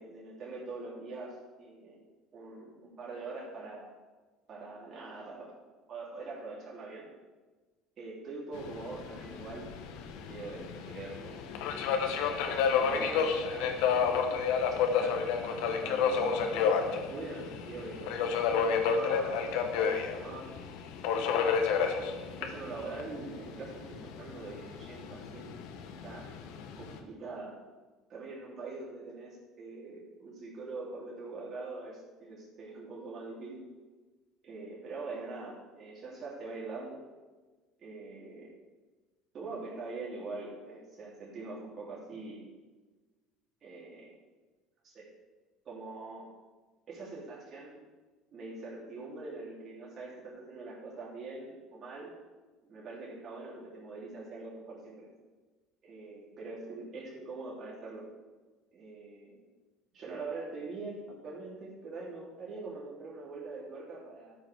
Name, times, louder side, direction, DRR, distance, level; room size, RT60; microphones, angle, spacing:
voice 1, 0.0-2.0 2.3-3.9 4.5-5.5 5.9-7.1 8.0-11.5 11.9-12.1 12.4-14.0 14.8-20.4 21.2-21.7 22.2-25.6 26.0-26.3 26.8-27.6 28.1-33.6 34.4-37.0 37.8-38.5 39.3-42.5 43.6-44.1 44.8-45.1 45.6-46.3 46.9-47.8 48.3-52.1 52.6-55.1 55.8-58.1 58.7-59.4 59.9-64.4, right 3 dB, 45° right, -5 dB, 3.2 m, -43 dB
Subway metro underground, 8.5-27.0, left 6 dB, 75° left, 1.1 m, -31 dB
13.0 x 5.8 x 4.7 m, 1.3 s
hypercardioid pair, 75°, 0 cm